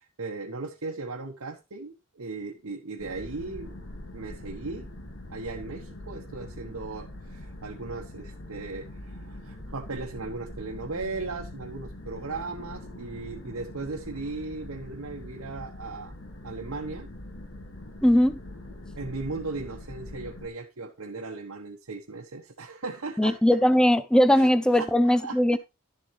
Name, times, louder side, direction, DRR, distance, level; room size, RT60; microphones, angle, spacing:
voice 1, 0.0-3.8 4.1-4.9 5.3-16.1 16.4-17.1 19.0-23.4 24.3-24.5 24.7-25.4, right 3 dB, 85° right, 1.2 m, -37 dB
sound 1, 3.0-20.5, left 1 dB, 60° left, 1.8 m, -43 dB
voice 2, 18.0-18.4 23.2-25.6, equal, 5° left, 0.6 m, -20 dB
12.0 x 7.5 x 3.2 m
head